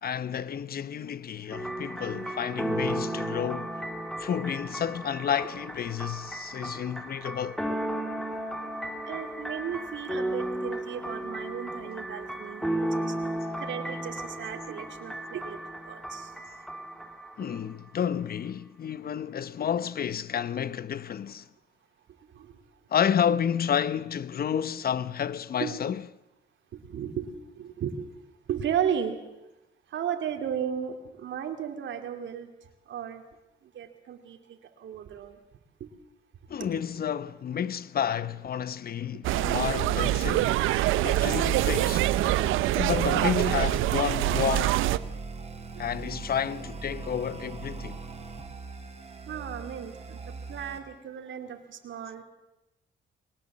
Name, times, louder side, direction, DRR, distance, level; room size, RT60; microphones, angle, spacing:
voice 1, 0.0-3.7 4.2-7.6 17.4-21.4 22.9-26.0 36.5-42.1 42.7-44.8 45.8-48.0, left 8 dB, 50° left, 0.9 m, -30 dB
sound 1, 1.5-17.6, right 1 dB, ahead, 2.6 m, -34 dB
voice 2, 9.1-13.1 13.6-15.6 15.9-16.3 22.3-22.5 25.6-25.8 26.7-27.3 27.6-27.9 28.5-29.2 29.9-32.5 32.9-33.2 33.7-35.4 35.8-35.9 41.9-42.0 45.8-45.9 49.3-50.2 50.5-52.2, right 8 dB, 70° right, 2.8 m, -34 dB
sound 2, 39.2-45.0, right 15 dB, 90° right, 0.7 m, -25 dB
sound 3, 41.2-50.8, right 3 dB, 35° right, 3.7 m, -41 dB
21.5 x 19.0 x 7.5 m
cardioid pair, 90°, 20 cm